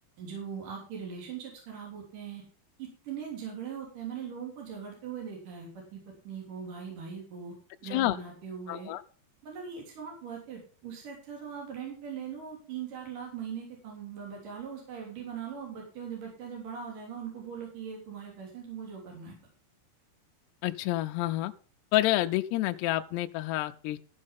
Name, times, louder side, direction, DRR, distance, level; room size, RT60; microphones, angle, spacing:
voice 1, 0.2-2.4 2.8-7.5 7.8-8.9 9.4-19.3, right 7 dB, 50° right, -1 dB, 4.5 m, -40 dB
voice 2, 8.7-9.0 20.6-21.5 21.9-24.0, left 16 dB, 80° left, 7 dB, 2.5 m, -28 dB
14.5 x 6.5 x 5.2 m, 0.41 s
omnidirectional pair, 5.2 m